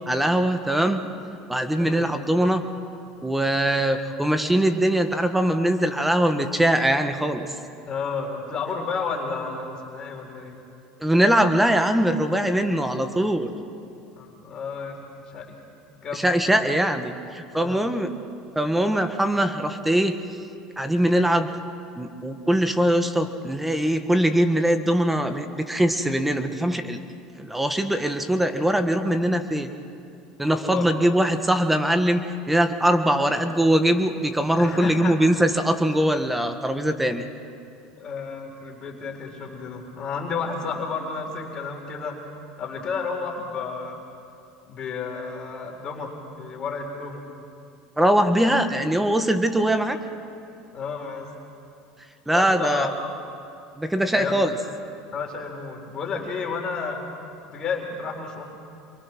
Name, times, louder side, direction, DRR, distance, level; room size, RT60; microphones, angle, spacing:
voice 1, 0.1-1.0 1.5-2.6 3.2-7.5 11.0-13.5 16.1-18.1 18.5-20.2 20.8-21.5 22.0-27.0 27.4-29.7 30.4-37.2 48.0-50.0 52.3-52.9 53.7-54.5, right 1 dB, 5° right, 8 dB, 1.6 m, -22 dB
voice 2, 1.8-2.1 7.9-10.6 14.2-15.5 16.0-16.3 17.5-17.9 30.5-30.9 34.6-35.1 38.0-42.2 42.6-44.0 44.7-47.3 49.6-49.7 50.7-51.3 52.3-52.9 54.1-54.5 55.1-57.0 57.4-58.4, left 5 dB, 35° left, 1 dB, 4.1 m, -31 dB
27.5 x 23.5 x 6.2 m, 2.6 s
supercardioid pair, 110°, 2 cm